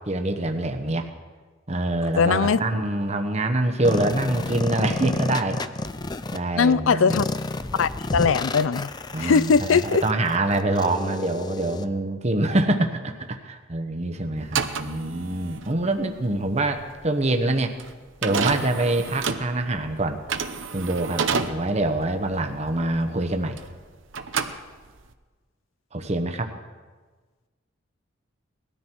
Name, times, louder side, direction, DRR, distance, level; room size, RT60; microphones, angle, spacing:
voice 1, 0.1-1.1 1.7-5.6 6.3-7.2 9.1-17.7 18.2-20.2 20.7-23.6 25.9-26.5, right 2 dB, 35° right, 6 dB, 1.1 m, -25 dB
voice 2, 2.2-2.6 6.6-7.3 7.8-8.9 9.2-10.0, left 5 dB, 80° left, 17 dB, 0.4 m, -20 dB
sound 1, 3.8-6.4 7.1-11.8, left 2 dB, 20° left, 0.5 m, -30 dB
sound 2, 14.4-23.8 24.1-25.1, right 5 dB, 70° right, 0.9 m, -30 dB
19.5 x 13.5 x 4.6 m, 1.4 s
head